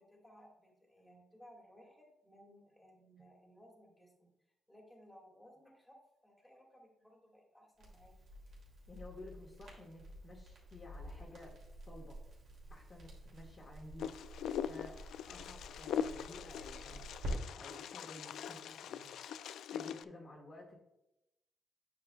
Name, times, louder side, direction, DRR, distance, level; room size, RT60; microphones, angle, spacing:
voice 1, 0.0-4.3 4.7-8.1, equal, 5° left, -1 dB, 2.4 m, -61 dB
Crackle, 7.8-17.3, equal, 65° right, 3.0 m, -49 dB
voice 2, 8.9-11.5 11.9-12.2 12.7-14.1 14.6-14.9 15.3-19.2 19.7-20.7, left 1 dB, 35° left, -2 dB, 1.7 m, -53 dB
Wind, 14.0-20.0, left 8 dB, 85° left, 0.3 m, -42 dB
9.1 x 7.7 x 2.4 m, 0.88 s
cardioid pair, 115°, 0 cm